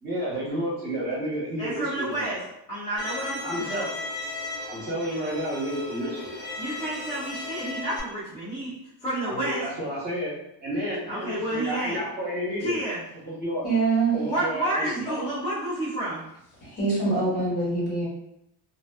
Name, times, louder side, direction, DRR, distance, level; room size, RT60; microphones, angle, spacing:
voice 1, 0.0-2.4 3.4-3.9 4.7-6.3 9.2-12.8 13.2-13.6 14.1-15.3, equal, 20° right, -6 dB, 0.9 m, -31 dB
voice 2, 1.6-2.4 2.7-3.9 6.6-8.7 9.0-9.6 11.1-12.0 12.6-13.0 14.3-16.2, right 1 dB, 15° left, -10 dB, 0.4 m, -30 dB
Bowed string instrument, 3.0-8.0, left 2 dB, 80° left, 1.0 m, -36 dB
voice 3, 13.6-14.1 16.6-18.1, right 3 dB, 55° left, -6 dB, 1.4 m, -24 dB
2.5 x 2.2 x 2.3 m, 0.79 s
cardioid pair, 160°, 45 cm